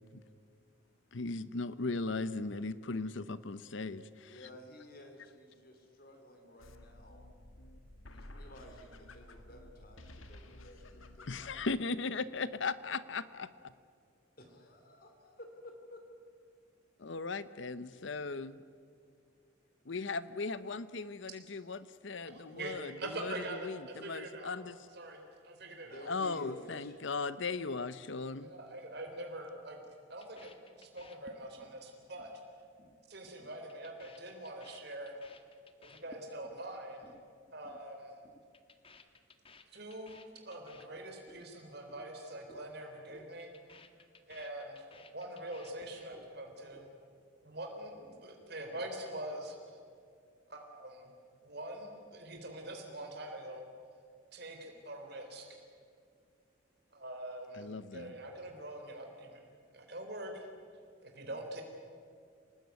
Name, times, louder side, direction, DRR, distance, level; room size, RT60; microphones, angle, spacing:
voice 1, 1.1-4.4 11.3-13.7 17.0-18.6 19.9-23.3 23.6-24.8 26.1-28.5 57.6-58.1, left 3 dB, 65° left, 15 dB, 0.8 m, -38 dB
voice 2, 4.2-7.3 8.1-11.6 14.4-16.0 25.8-27.0, left 1 dB, 45° left, 4 dB, 2.9 m, -53 dB
sound 1, 6.6-11.7, left 1 dB, 85° left, 1.8 m, -53 dB
voice 3, 22.3-24.5 24.9-26.1 28.4-29.8 30.1-32.3 33.1-35.2 35.8-37.1 37.5-38.1 39.7-43.5 44.3-46.9 47.4-49.8 50.5-51.1 51.4-53.6 54.3-55.6 56.9-59.4 59.7-60.5 61.0-61.6, right 1 dB, 55° right, 3 dB, 3.8 m, -44 dB
sound 2, 30.2-31.8 32.0-32.4 32.6-33.0 33.2-36.6 36.9-37.2 37.5-37.8 38.1-41.5 41.7-42.1 42.3-42.7 42.9-46.3 46.6-47.2, left 3 dB, 30° left, 1.4 m, -58 dB
26.5 x 19.0 x 9.3 m, 2.3 s
head